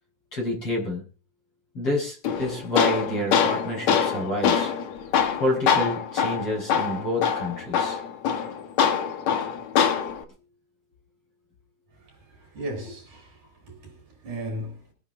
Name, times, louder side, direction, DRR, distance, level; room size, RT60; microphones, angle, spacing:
voice 1, 0.3-1.0 1.7-4.7 5.4-8.0, left 1 dB, 30° left, 5.6 m, -28 dB
Tools, 2.2-10.2, left 7 dB, 60° left, 1.8 m, -24 dB
voice 2, 11.9-14.9, right 1 dB, 40° right, 6.3 m, -37 dB
23.5 x 9.9 x 3.9 m
omnidirectional pair, 5.5 m